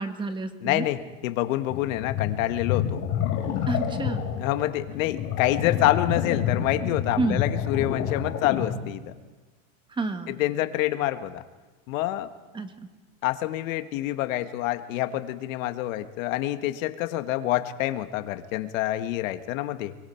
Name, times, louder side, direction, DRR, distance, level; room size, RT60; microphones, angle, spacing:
voice 1, 0.0-0.9 3.7-4.2 7.2-7.4 10.0-10.3 12.5-12.9, right 3 dB, 10° right, 8 dB, 1.3 m, -29 dB
voice 2, 0.6-3.0 4.4-9.0 10.3-11.4 11.9-12.3 13.2-20.0, left 14 dB, 65° left, 9 dB, 1.5 m, -27 dB
sound 1, 1.7-8.8, left 9 dB, 40° left, 3.2 m, -28 dB
25.0 x 23.5 x 4.5 m, 1.3 s
supercardioid pair, 150°, 43 cm